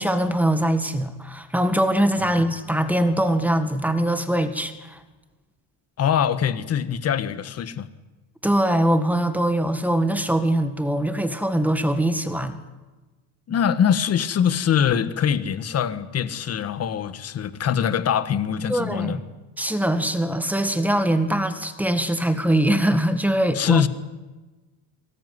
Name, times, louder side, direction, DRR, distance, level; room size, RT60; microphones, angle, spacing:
voice 1, 0.0-5.0 8.4-12.6 18.7-19.2 19.6-23.8, right 1 dB, 5° right, 1.7 m, -22 dB
voice 2, 6.0-7.9 13.5-19.2 23.5-23.9, left 8 dB, 30° left, 1.4 m, -23 dB
24.0 x 19.0 x 9.7 m
cardioid pair, 165°, 48 cm